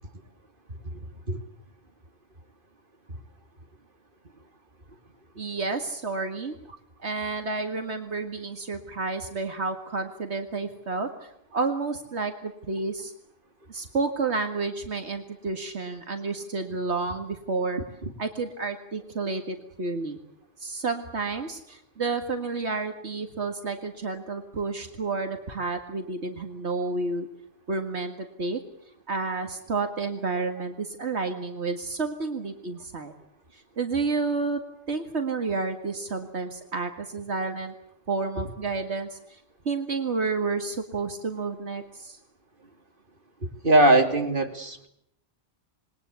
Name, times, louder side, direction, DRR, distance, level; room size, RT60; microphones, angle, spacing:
voice 1, 5.4-6.5 7.0-13.1 13.7-17.8 18.2-20.2 20.6-27.3 27.7-28.6 29.1-33.1 33.5-34.6 34.9-37.7 38.1-39.4 39.7-42.2, right 3 dB, 80° right, 5 dB, 2.2 m, -30 dB
voice 2, 43.6-44.9, right 1 dB, 50° right, 4 dB, 3.1 m, -20 dB
27.5 x 21.0 x 8.3 m, 0.74 s
omnidirectional pair, 1.1 m